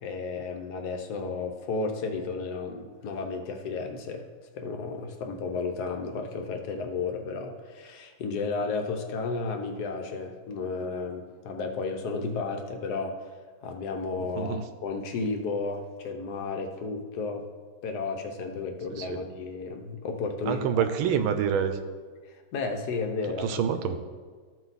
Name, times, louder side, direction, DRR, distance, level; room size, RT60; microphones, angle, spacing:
voice 1, 0.0-4.2 4.6-13.2 13.6-17.4 17.8-20.9 22.3-23.5 23.8-24.0, left 4 dB, 60° left, 4 dB, 1.2 m, -33 dB
voice 2, 18.9-19.2 20.5-21.8 23.4-24.0, right 8 dB, 85° right, 9 dB, 1.5 m, -27 dB
14.0 x 4.7 x 4.0 m, 1.5 s
omnidirectional pair, 2.3 m